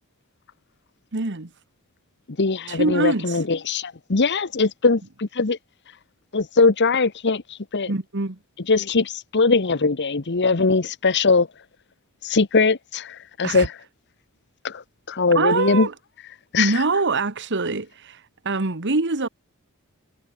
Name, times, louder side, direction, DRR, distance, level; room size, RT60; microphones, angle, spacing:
voice 1, 1.1-1.5 2.7-3.4 7.9-8.4 13.4-13.7 15.3-15.9 16.5-19.3, right 3 dB, 55° right, 1.5 m, -24 dB
voice 2, 2.4-5.6 6.3-7.9 8.7-11.5 12.2-13.8 14.6-15.9 16.5-16.8, left 4 dB, 50° left, 1.0 m, -21 dB
head